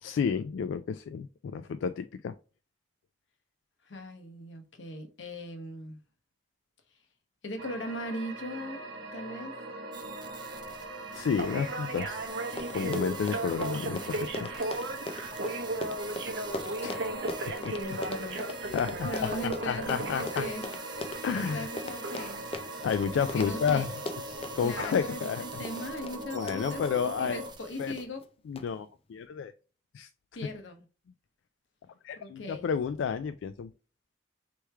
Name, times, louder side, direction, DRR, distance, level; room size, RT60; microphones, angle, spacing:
voice 1, 0.0-2.3 11.1-12.2 12.7-14.5 16.8-17.0 17.6-18.0 18.7-20.5 21.2-21.7 22.8-23.9 24.3-25.4 26.3-27.4 27.8-27.9 28.5-29.5 29.9-30.1 32.0-33.7, left 6 dB, 90° left, 0.3 m, -31 dB
voice 2, 3.9-6.0 7.4-8.8 9.1-9.5 17.8-18.4 19.0-20.7 21.4-22.4 23.3-23.9 24.6-28.2 30.3-30.8 32.2-32.7, left 1 dB, 70° left, 1.0 m, -39 dB
sound 1, 7.6-27.5, right 2 dB, 70° right, 1.0 m, -37 dB
sound 2, 9.9-28.0, right 5 dB, 25° right, 0.6 m, -47 dB
Run, 12.1-12.2 12.4-27.4 28.0-28.2 28.6-28.7, left 2 dB, 30° left, 0.5 m, -40 dB
3.5 x 3.1 x 4.4 m
head